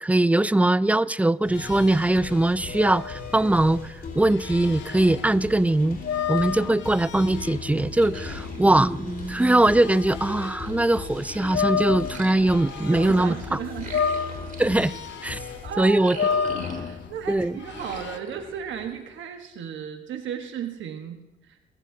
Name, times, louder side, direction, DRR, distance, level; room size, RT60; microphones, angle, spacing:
voice 1, 0.0-6.0 6.3-13.6 14.6-14.9 15.2-15.4 15.8-16.2 17.3-17.6, right 1 dB, 5° right, 0.4 m, -21 dB
sound 1, 1.4-15.8, left 5 dB, 50° left, 4.4 m, -38 dB
sound 2, 1.5-10.6 11.0-13.5 13.8-18.2, left 7 dB, 65° left, 1.2 m, -32 dB
sound 3, 7.9-11.6 12.0-17.2 17.6-19.4, right 4 dB, 40° right, 2.8 m, -43 dB
voice 2, 12.9-14.0 15.3-16.4 16.7-21.7, right 8 dB, 75° right, 1.3 m, -35 dB
23.0 x 15.0 x 2.8 m
cardioid pair, 90°, 20 cm